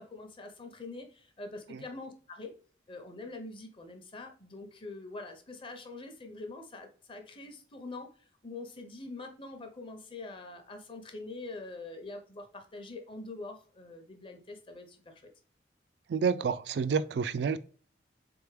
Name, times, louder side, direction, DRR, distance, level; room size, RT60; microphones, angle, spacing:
voice 1, 0.0-2.5 2.9-15.2, left 2 dB, 30° left, 0.7 m, -44 dB
voice 2, 16.1-17.6, right 6 dB, 65° right, 0.3 m, -29 dB
3.8 x 3.4 x 3.1 m
head